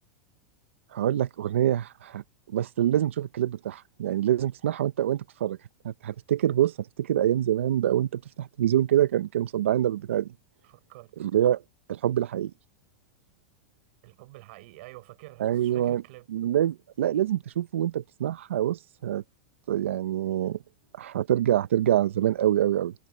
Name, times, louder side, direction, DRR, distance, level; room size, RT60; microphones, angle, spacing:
voice 1, 0.9-2.2 2.5-5.6 5.8-10.3 11.2-11.6 11.9-12.5 15.4-16.0 16.3-19.2 19.7-20.6 21.0-22.9, right 11 dB, 85° right, 0.6 m, -25 dB
voice 2, 10.6-11.1 14.0-16.3, right 21 dB, 65° right, 6.0 m, -48 dB
hypercardioid pair, 115°, 7 cm